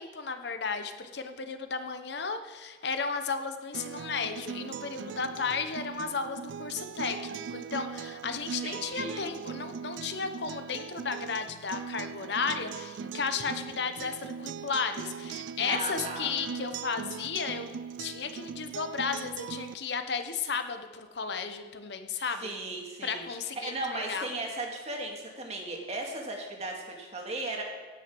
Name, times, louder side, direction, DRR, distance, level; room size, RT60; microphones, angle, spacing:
voice 1, 0.0-17.7 18.0-22.5 23.0-24.3, left 5 dB, 65° left, 8 dB, 0.9 m, -34 dB
Acoustic guitar, 3.7-19.7, right 6 dB, 75° right, 0.4 m, -40 dB
voice 2, 8.6-9.3 15.5-16.3 22.4-23.2 23.6-27.6, right 2 dB, 35° right, 1 dB, 2.0 m, -36 dB
16.5 x 6.2 x 6.1 m, 1.4 s
head